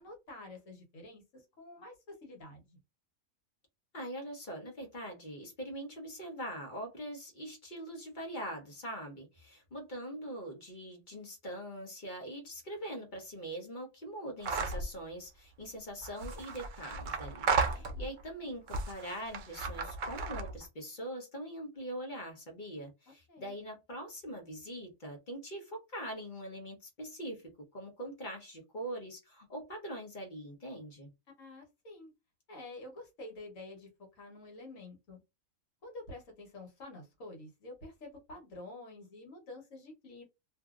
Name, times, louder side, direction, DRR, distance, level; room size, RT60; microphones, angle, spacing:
voice 1, 0.0-2.8 17.7-18.2 23.3-23.5 31.4-32.1 32.5-35.2 35.8-40.2, left 2 dB, 70° left, 1.5 m, -49 dB
voice 2, 3.9-31.1, right 1 dB, 40° left, 1.0 m, -43 dB
sound 1, 14.4-14.9 16.0-18.2 18.7-20.7, right 4 dB, 75° right, 0.4 m, -34 dB
2.7 x 2.6 x 2.4 m
omnidirectional pair, 1.4 m